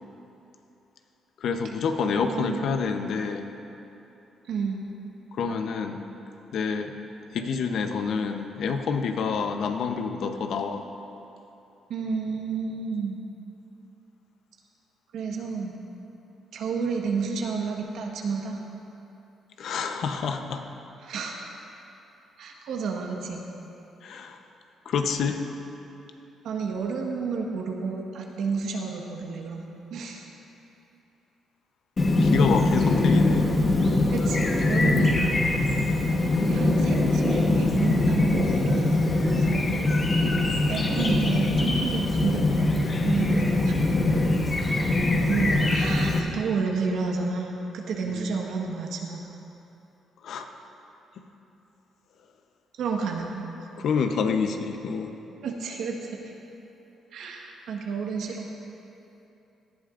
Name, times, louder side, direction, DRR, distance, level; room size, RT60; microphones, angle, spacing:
voice 1, 1.4-3.5 5.3-6.0 6.5-6.9 7.3-10.8 19.6-20.6 24.0-24.4 24.8-25.4 32.2-33.5 48.1-48.2 50.2-50.5 53.8-55.1, left 5 dB, 70° left, 6 dB, 0.8 m, -27 dB
voice 2, 2.3-2.6 4.5-4.9 11.9-13.2 15.1-15.8 16.5-18.6 21.0-21.3 22.4-23.4 26.4-30.2 34.1-35.3 36.4-39.7 40.7-42.7 43.0-43.7 45.3-49.4 52.8-53.4 55.4-56.3 57.1-58.5, right 5 dB, 80° right, 1 dB, 1.4 m, -30 dB
Chirp tweet, 32.0-46.2, left 2 dB, 35° left, 1.3 m, -22 dB
17.5 x 11.5 x 2.6 m, 2.9 s
cardioid pair, 90°, 0 cm